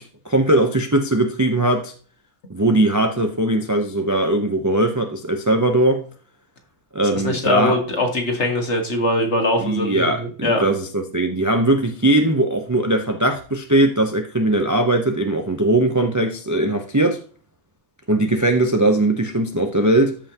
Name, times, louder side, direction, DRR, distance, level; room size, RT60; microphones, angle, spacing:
voice 1, 0.0-1.9 2.5-6.0 6.9-7.8 9.6-17.2 18.1-20.2, right 1 dB, 20° right, 0.6 m, -19 dB
voice 2, 7.2-10.6, left 1 dB, 50° left, 2.0 m, -22 dB
13.5 x 5.6 x 2.9 m
omnidirectional pair, 1.5 m